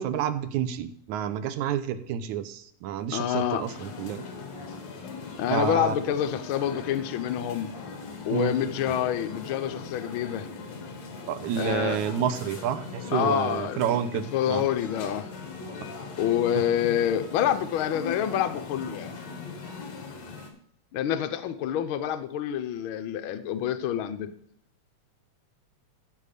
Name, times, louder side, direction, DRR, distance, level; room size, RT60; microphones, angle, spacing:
voice 1, 0.0-4.2 5.5-6.0 8.3-8.5 11.3-14.6, right 9 dB, 85° right, 11 dB, 2.2 m, -29 dB
voice 2, 3.1-3.9 5.4-7.8 8.3-10.5 11.5-12.0 13.1-13.8 14.3-15.3 16.2-19.1 20.9-24.3, left 10 dB, 85° left, 9 dB, 1.1 m, -27 dB
sound 1, 3.1-20.5, left 4 dB, 65° left, 3.0 m, -40 dB
14.5 x 5.7 x 6.6 m, 0.67 s
omnidirectional pair, 3.3 m